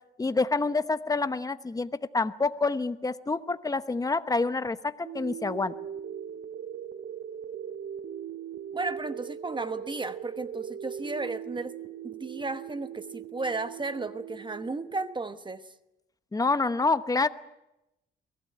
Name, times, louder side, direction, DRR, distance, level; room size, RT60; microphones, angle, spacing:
voice 1, 0.2-5.7 16.3-17.3, left 3 dB, 20° left, 12 dB, 1.0 m, -27 dB
sound 1, 5.0-15.0, right 9 dB, 60° right, 0.9 m, -40 dB
voice 2, 8.7-11.8 12.0-15.7, right 3 dB, 25° right, 11 dB, 1.1 m, -34 dB
23.0 x 16.0 x 9.7 m, 0.92 s
cardioid pair, 90°, 20 cm